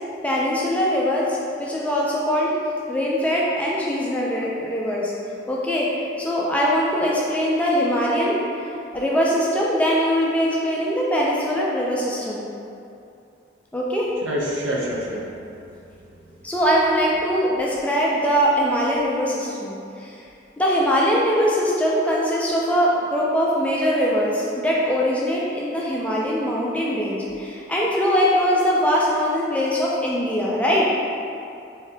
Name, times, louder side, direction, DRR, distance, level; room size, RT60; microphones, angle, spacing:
voice 1, 0.2-2.5 2.9-5.1 5.5-5.9 6.2-12.4 13.7-14.1 16.4-20.1 20.6-30.9, equal, 5° left, -5 dB, 0.3 m, -22 dB
voice 2, 14.2-16.5, equal, 80° right, -2 dB, 0.6 m, -29 dB
3.2 x 2.7 x 3.3 m, 2.6 s
head